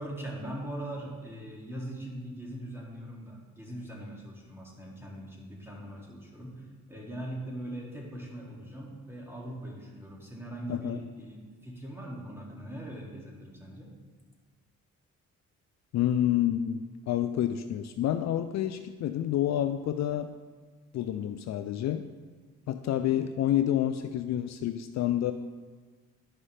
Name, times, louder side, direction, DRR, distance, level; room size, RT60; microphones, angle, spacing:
voice 1, 0.0-13.9, right 1 dB, 10° right, -3 dB, 2.3 m, -41 dB
voice 2, 10.7-11.1 15.9-20.3 20.9-22.0 22.7-25.3, left 11 dB, 60° left, 9 dB, 0.4 m, -28 dB
11.5 x 5.3 x 3.3 m, 1.4 s
supercardioid pair, 70°, 32 cm